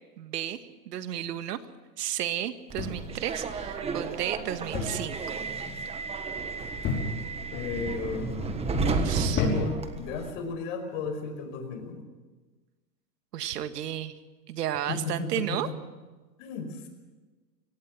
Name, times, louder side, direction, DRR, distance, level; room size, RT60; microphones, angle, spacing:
voice 1, 0.2-1.6 2.0-5.4 9.0-9.5 13.3-14.1 14.5-15.7, right 11 dB, 70° right, 10 dB, 1.8 m, -33 dB
Subway metro underground, 2.7-10.3, right 4 dB, 10° right, 1.4 m, -33 dB
sound 1, 2.8-3.3 4.7-5.1 5.4-5.8 6.8-7.4 8.1-8.5 9.3-9.9 10.9-11.2, left 3 dB, 25° left, 5.4 m, -30 dB
voice 2, 7.5-12.0 14.9-15.7 16.4-16.9, left 5 dB, 50° left, 6 dB, 5.4 m, -34 dB
24.0 x 17.5 x 7.6 m, 1.2 s
hypercardioid pair, 145°, 50 cm